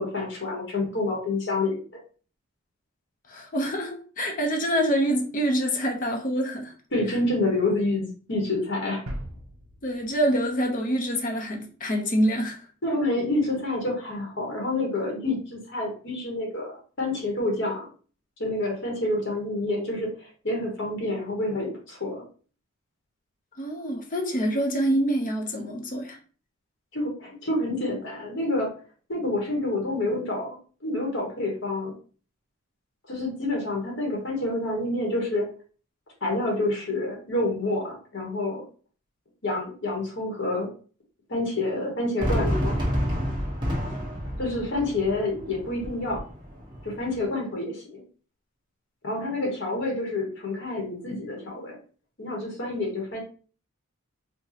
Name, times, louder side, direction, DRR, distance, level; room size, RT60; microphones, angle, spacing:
voice 1, 0.0-1.8 6.9-9.0 12.8-17.9 18.4-22.2 26.9-28.7 29.1-30.6 30.8-31.9 33.1-35.4 36.2-38.6 39.4-40.7 41.3-42.8 44.4-46.2 46.8-48.0 49.0-51.8 52.2-53.2, left 2 dB, 55° left, 1.0 m, -28 dB
voice 2, 3.3-6.7 9.8-12.6 23.6-26.2 44.8-44.9, equal, 35° left, 0.7 m, -26 dB
sound 1, 9.1-11.7, equal, 85° right, 0.9 m, -41 dB
Fireworks, 42.2-47.2, equal, 20° right, 1.1 m, -29 dB
4.8 x 2.2 x 2.8 m
head